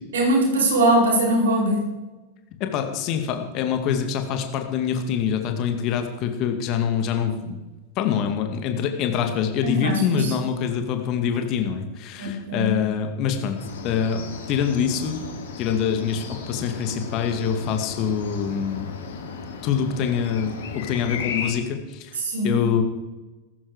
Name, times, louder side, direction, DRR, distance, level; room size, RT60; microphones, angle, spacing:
voice 1, 0.1-1.9 9.6-10.3 12.2-12.8 22.2-22.6, right 1 dB, 65° right, -1 dB, 5.4 m, -21 dB
voice 2, 2.6-7.6 8.0-14.2 14.5-15.2 15.6-18.9 19.6-22.2 22.4-22.8, left 7 dB, 40° left, 6 dB, 2.2 m, -25 dB
sound 1, 13.6-21.5, left 4 dB, 60° left, 3.0 m, -35 dB
17.0 x 14.5 x 5.1 m, 1.1 s
figure-of-eight pair, 90°, 0 cm